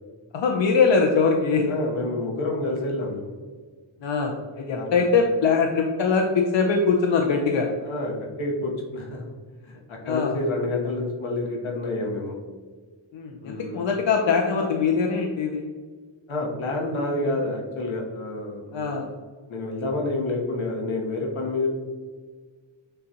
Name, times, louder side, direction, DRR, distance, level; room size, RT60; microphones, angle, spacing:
voice 1, 0.3-1.7 4.0-7.7 10.0-10.3 13.1-15.7 18.7-19.1, left 5 dB, 70° left, 2 dB, 0.6 m, -22 dB
voice 2, 1.6-3.3 4.7-5.0 7.8-9.3 9.6-12.3 13.4-13.8 16.3-19.0 19.5-21.7, left 2 dB, 85° left, -1 dB, 1.1 m, -28 dB
6.6 x 2.4 x 2.7 m, 1.5 s
cardioid pair, 65°, 47 cm